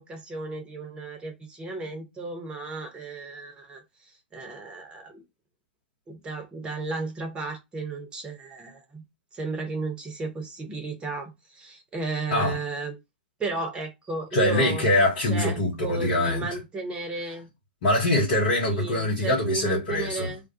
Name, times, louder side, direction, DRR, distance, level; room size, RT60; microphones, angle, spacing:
voice 1, 0.0-3.8 4.3-5.2 6.1-9.0 9.3-12.9 13.4-14.9 15.3-17.5 18.7-20.4, right 3 dB, 15° right, 0.8 m, -34 dB
voice 2, 14.3-16.6 17.8-20.3, left 1 dB, 55° left, 0.9 m, -23 dB
2.3 x 2.2 x 2.5 m
figure-of-eight pair, 100°, 6 cm